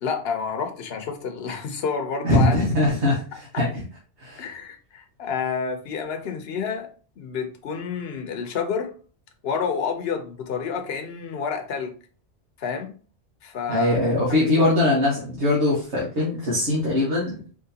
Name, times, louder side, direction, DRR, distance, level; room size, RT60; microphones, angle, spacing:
voice 1, 0.0-2.6 3.5-3.6 4.4-6.9 7.2-8.9 9.4-12.0 12.6-12.9 13.4-14.0 14.6-14.7, left 6 dB, 65° left, 1.0 m, -29 dB
voice 2, 2.2-3.8 4.2-4.4 13.7-17.4, left 2 dB, 80° right, 1.7 m, -21 dB
4.7 x 3.1 x 2.8 m
omnidirectional pair, 1.1 m